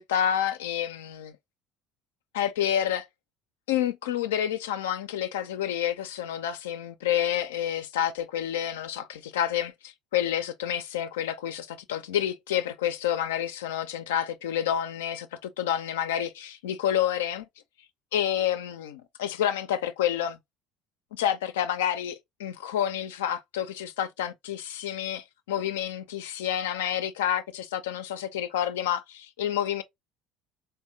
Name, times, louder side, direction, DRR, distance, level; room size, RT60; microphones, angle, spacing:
voice 1, 0.0-1.3 2.3-3.1 3.7-17.5 18.1-20.4 21.1-29.8, left 10 dB, 85° left, 0.4 m, -29 dB
3.5 x 2.1 x 2.7 m
hypercardioid pair, 70°, 0 cm